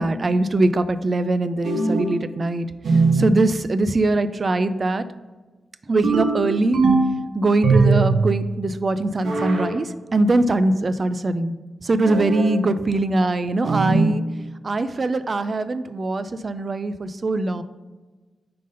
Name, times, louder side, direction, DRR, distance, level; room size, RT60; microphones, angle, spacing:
voice 1, 0.0-2.7 3.1-5.1 5.9-6.8 7.3-11.5 11.8-14.2 14.6-17.6, right 2 dB, 35° right, 12 dB, 0.3 m, -22 dB
sound 1, 1.6-2.2 2.8-3.4 6.0-7.2 7.6-8.3 9.2-9.7 12.0-12.6 13.6-14.2, right 3 dB, 80° right, 1.0 m, -20 dB
5.1 x 3.8 x 5.3 m, 1.3 s
wide cardioid pair, 155°, 0 cm